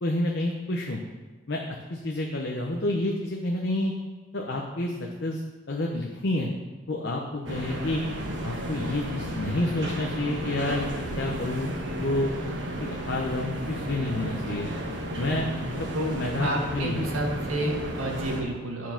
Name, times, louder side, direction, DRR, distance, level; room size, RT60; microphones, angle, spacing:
voice 1, 0.0-1.0 1.5-1.6 1.9-3.9 4.3-5.4 5.7-6.5 6.9-8.0 8.4-10.9 11.2-11.7 12.0-12.3 12.8-14.7 15.2-17.1, left 1 dB, 55° left, 0 dB, 0.8 m, -29 dB
sound 1, 7.5-18.4, equal, 60° right, 1.2 m, -33 dB
voice 2, 16.4-18.9, right 1 dB, 90° right, 1 dB, 1.6 m, -30 dB
10.0 x 4.6 x 5.9 m, 1.2 s
head